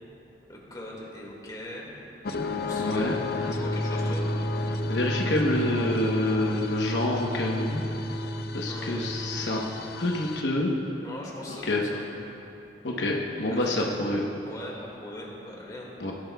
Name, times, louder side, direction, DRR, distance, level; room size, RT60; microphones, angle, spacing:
voice 1, 0.5-1.9 2.6-4.3 8.7-9.3 11.0-12.0 13.5-13.8 14.5-15.9, left 1 dB, 20° left, -3 dB, 1.9 m, -41 dB
sound 1, 2.2-10.4, left 4 dB, 60° left, 0.6 m, -35 dB
voice 2, 2.8-3.2 4.9-7.8 8.5-9.6 10.0-10.7 11.6-11.8 12.8-14.2 16.0-16.1, left 1 dB, 80° left, -1 dB, 1.0 m, -27 dB
sound 2, 3.4-9.6, right 1 dB, 45° left, 2.3 m, -32 dB
19.0 x 11.5 x 2.3 m, 2.9 s
head